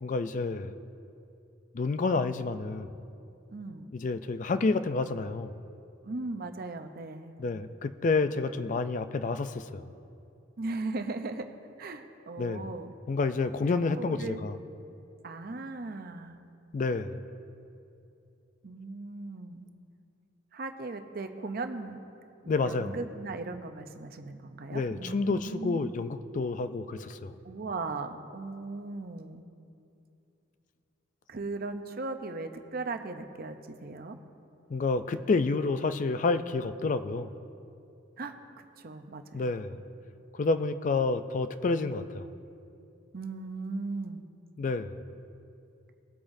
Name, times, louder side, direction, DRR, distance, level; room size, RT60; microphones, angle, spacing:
voice 1, 0.0-0.8 1.7-2.9 3.9-5.5 7.4-9.9 12.4-12.7 13.1-14.6 16.7-17.2 22.5-23.0 24.7-27.3 34.7-37.3 39.3-39.8 40.3-42.3 44.6-44.9, left 3 dB, 40° left, 11 dB, 0.4 m, -29 dB
voice 2, 3.5-4.0 6.0-7.4 10.6-11.5 11.8-12.9 14.0-14.4 15.2-16.4 18.6-19.7 20.5-22.0 22.4-25.9 27.4-29.4 31.3-34.2 38.2-39.5 43.1-44.3, right 3 dB, 50° right, 6 dB, 0.7 m, -38 dB
20.0 x 8.6 x 2.6 m, 2.6 s
head